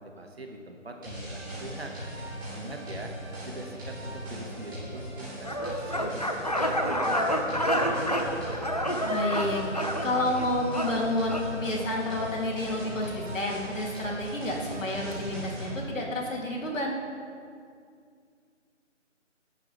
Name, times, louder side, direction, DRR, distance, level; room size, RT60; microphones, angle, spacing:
voice 1, 0.0-1.9 2.5-3.1 3.5-8.0, right 1 dB, 55° right, 2 dB, 1.8 m, -42 dB
sound 1, 1.0-15.8, right 1 dB, 20° right, 3.9 m, -39 dB
sound 2, 5.4-11.5, equal, 30° left, 0.7 m, -29 dB
voice 2, 9.0-17.0, left 1 dB, 85° left, -2 dB, 3.3 m, -30 dB
18.5 x 11.0 x 3.5 m, 2.3 s
figure-of-eight pair, 175°, 37 cm